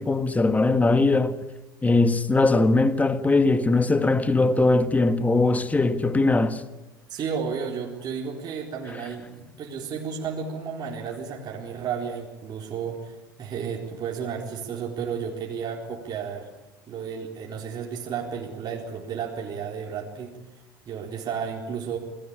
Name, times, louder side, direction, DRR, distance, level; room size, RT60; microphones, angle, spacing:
voice 1, 0.0-1.4 1.8-6.6, left 3 dB, 15° left, 1.6 m, -20 dB
voice 2, 7.1-16.5 16.9-20.4 20.9-22.0, right 6 dB, 40° right, 4.1 m, -32 dB
28.0 x 20.0 x 8.8 m
figure-of-eight pair, 70°, 11 cm